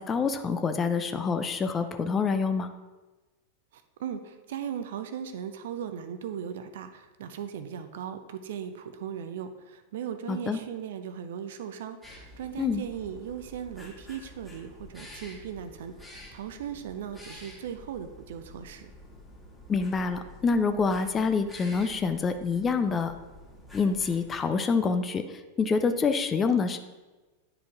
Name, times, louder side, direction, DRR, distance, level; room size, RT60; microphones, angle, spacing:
voice 1, 0.0-2.7 10.3-10.6 12.6-12.8 19.7-23.1 23.7-26.8, left 5 dB, 20° left, 9 dB, 0.5 m, -26 dB
voice 2, 3.7-18.9, right 8 dB, 55° right, 9 dB, 0.6 m, -38 dB
sound 1, 12.0-24.5, left 1 dB, 5° left, 2.0 m, -49 dB
10.0 x 4.9 x 3.6 m, 1.2 s
figure-of-eight pair, 90°, 0 cm